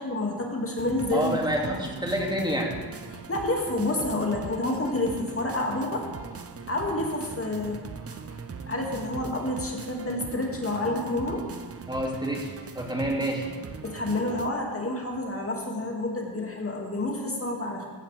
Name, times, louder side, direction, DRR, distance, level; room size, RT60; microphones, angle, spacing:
voice 1, 0.0-1.7 3.1-6.1 6.3-11.4 13.8-17.9, left 2 dB, 30° left, 0 dB, 2.5 m, -29 dB
sound 1, 0.8-14.5, right 5 dB, 30° right, 0.9 m, -40 dB
voice 2, 1.1-2.7 11.9-13.5, equal, 10° right, -1 dB, 2.6 m, -28 dB
16.0 x 13.5 x 3.5 m, 1.5 s
cardioid pair, 70°, 44 cm